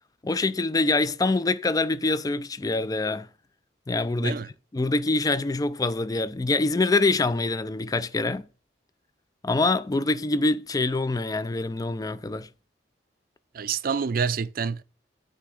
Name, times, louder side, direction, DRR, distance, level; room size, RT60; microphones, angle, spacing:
voice 1, 0.2-3.3 3.9-4.4 4.7-8.5 9.4-12.5, left 3 dB, 20° left, 0.4 m, -25 dB
voice 2, 13.5-14.8, right 6 dB, 55° right, 0.4 m, -27 dB
9.4 x 3.4 x 6.3 m
head